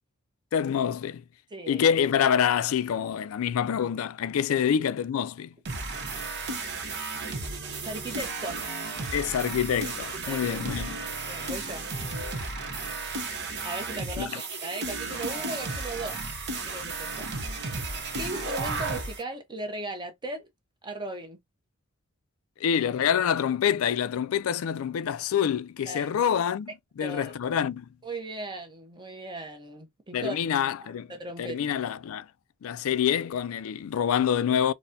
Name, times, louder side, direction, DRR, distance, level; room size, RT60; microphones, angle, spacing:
voice 1, 0.5-1.2 1.7-5.5 9.1-11.0 14.2-14.4 22.6-26.7 27.0-27.9 30.1-31.1 31.4-32.3 32.6-34.7, left 8 dB, 70° left, 0.3 m, -26 dB
voice 2, 1.5-1.8 7.8-8.7 10.3-10.4 11.3-11.8 13.6-16.2 16.6-17.3 18.2-20.5 20.8-21.4 25.9-26.1 27.0-27.3 28.0-30.4 30.8-31.8, right 2 dB, 20° right, 0.8 m, -37 dB
sound 1, 5.7-19.2, right 3 dB, 55° right, 0.9 m, -34 dB
4.1 x 2.1 x 2.6 m
head